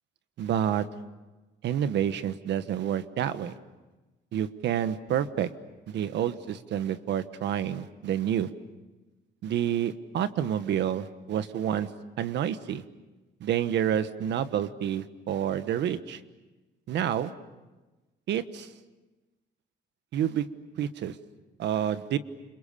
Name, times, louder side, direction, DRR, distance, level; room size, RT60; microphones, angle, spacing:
voice 1, 0.4-0.9 1.6-3.5 4.3-5.5 5.9-8.5 9.4-11.9 12.2-12.8 13.4-16.2 16.9-17.3 18.3-18.7 20.1-20.4 20.8-21.1 21.6-22.2, right 10 dB, 75° right, 12 dB, 1.4 m, -28 dB
29.0 x 27.5 x 6.9 m, 1.1 s
cardioid pair, 165°, 19 cm